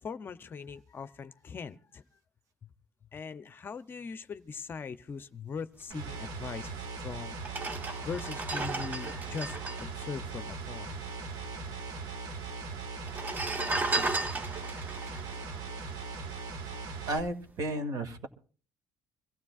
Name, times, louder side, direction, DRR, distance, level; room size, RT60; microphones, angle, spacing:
voice 1, 0.0-2.0 2.6-2.7 3.1-6.7 7.0-7.4 8.0-11.0, left 5 dB, 30° left, 12 dB, 0.6 m, -40 dB
sound 1, 5.9-17.2, right 4 dB, 80° right, 1.7 m, -40 dB
sound 2, 6.7-6.8 7.4-11.1 11.3-11.4 11.6-12.3 13.0-16.5 16.9-17.1, right 2 dB, 25° right, 1.1 m, -35 dB
voice 2, 17.1-18.3, right 1 dB, 60° right, 7 dB, 2.1 m, -33 dB
25.0 x 16.0 x 2.4 m, 0.40 s
cardioid pair, 125°, 7 cm